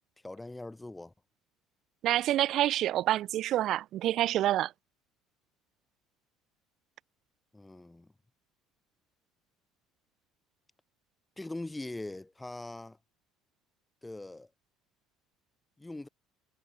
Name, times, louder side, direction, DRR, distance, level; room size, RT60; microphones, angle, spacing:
voice 1, 0.2-1.1 7.5-8.1 11.4-13.0 14.0-14.5 15.8-16.1, left 2 dB, 10° left, 7.5 m, -41 dB
voice 2, 2.0-4.7, right 13 dB, 50° right, 1.5 m, -27 dB
cardioid pair, 145°, 0 cm